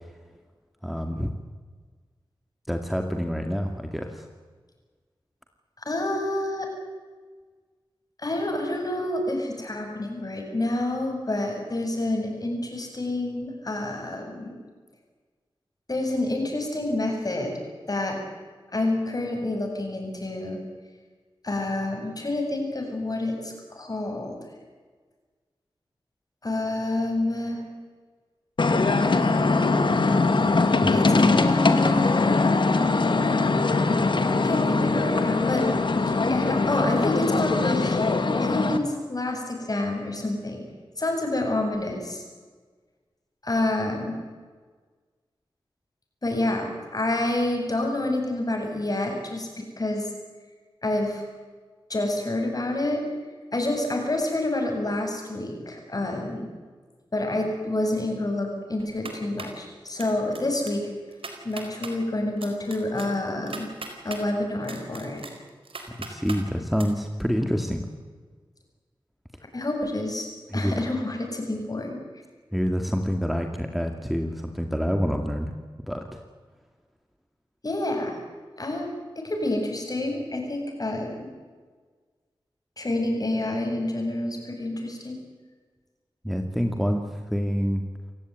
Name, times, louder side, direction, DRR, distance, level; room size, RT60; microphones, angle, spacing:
voice 1, 0.8-1.3 2.7-4.3 30.8-30.9 66.0-67.9 70.5-70.7 72.5-75.6 75.9-76.2 86.2-87.0 87.3-87.8, equal, ahead, 4 dB, 2.3 m, -27 dB
voice 2, 5.8-6.7 8.2-14.5 15.9-17.5 17.9-18.2 18.7-20.6 21.4-24.5 26.4-27.6 30.9-32.4 33.1-33.2 34.4-35.7 36.1-38.0 38.4-40.6 41.0-42.2 43.4-44.2 46.2-50.1 50.8-51.2 51.9-53.0 53.5-56.5 57.1-60.8 61.4-63.7 64.0-65.2 69.5-70.3 70.5-72.0 77.6-78.2 78.6-78.9 79.2-81.3 82.8-85.2, left 2 dB, 40° left, 2 dB, 7.7 m, -28 dB
sound 1, 28.6-38.8, left 3 dB, 60° left, 2.3 m, -21 dB
sound 2, 58.8-59.6 60.0-60.4 60.7-60.8 61.1-61.9 62.4-64.2 64.6-66.4 66.8-66.9, right 4 dB, 75° right, 4.3 m, -39 dB
28.0 x 16.0 x 9.5 m, 1.5 s
wide cardioid pair, 60°, 9 cm